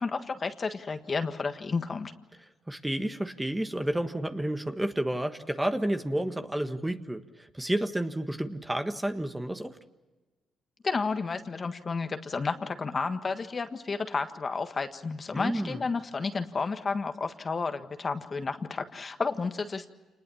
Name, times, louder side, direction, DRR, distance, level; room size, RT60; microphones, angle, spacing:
voice 1, 0.0-2.1 10.8-19.9, left 4 dB, 35° left, 7 dB, 1.6 m, -31 dB
voice 2, 2.7-9.8 15.3-15.8, right 1 dB, 10° right, 7 dB, 1.5 m, -31 dB
28.0 x 20.0 x 7.2 m, 1.2 s
cardioid pair, 90°, 0 cm